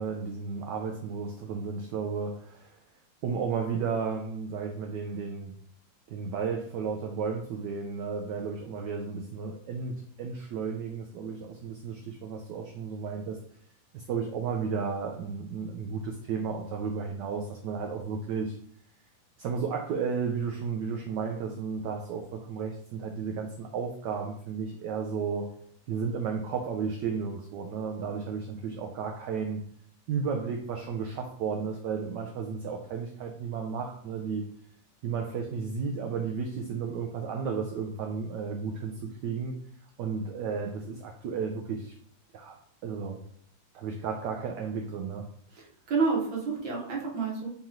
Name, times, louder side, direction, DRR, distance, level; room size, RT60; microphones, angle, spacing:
voice 1, 0.0-2.8 3.2-5.6 6.1-13.4 13.9-18.6 19.4-25.5 25.9-29.6 30.1-34.5 35.0-39.6 40.0-41.9 42.3-42.6 42.8-43.2 43.7-45.3, right 5 dB, 80° right, 2 dB, 0.9 m, -33 dB
voice 2, 45.5-47.5, right 4 dB, 65° right, -3 dB, 1.8 m, -29 dB
4.1 x 3.0 x 3.6 m, 0.64 s
omnidirectional pair, 2.4 m